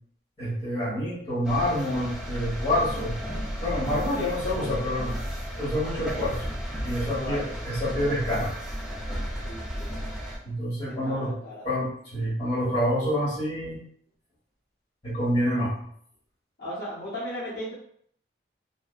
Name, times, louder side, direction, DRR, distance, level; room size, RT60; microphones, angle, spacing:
voice 1, 0.4-3.2 3.6-5.1 5.6-6.4 6.8-8.6 10.4-11.3 11.6-13.8 15.0-15.7, equal, 25° left, -9 dB, 1.5 m, -27 dB
sound 1, 1.4-10.4, equal, 5° right, 0.4 m, -33 dB
voice 2, 7.0-7.7 9.4-9.9 10.9-11.7 16.6-17.7, equal, 55° left, -11 dB, 0.8 m, -37 dB
2.7 x 2.1 x 2.3 m, 0.64 s
head